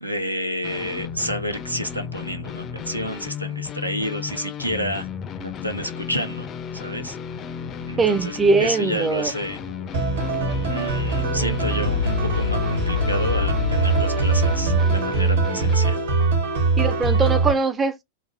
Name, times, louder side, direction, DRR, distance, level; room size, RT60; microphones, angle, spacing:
voice 1, 0.0-5.1 5.4-6.5 6.7-7.2 7.8-9.6 10.7-16.0, equal, 90° right, 0.8 m, -30 dB
sound 1, 0.6-15.8, left 7 dB, 30° left, 0.5 m, -34 dB
sound 2, 7.5-14.8, right 2 dB, 85° left, 0.7 m, -31 dB
voice 2, 8.0-9.3 16.8-18.0, right 4 dB, 20° right, 0.5 m, -21 dB
sound 3, 9.9-17.5, right 2 dB, 60° right, 1.2 m, -22 dB
3.9 x 2.5 x 3.2 m
figure-of-eight pair, 90°, 0 cm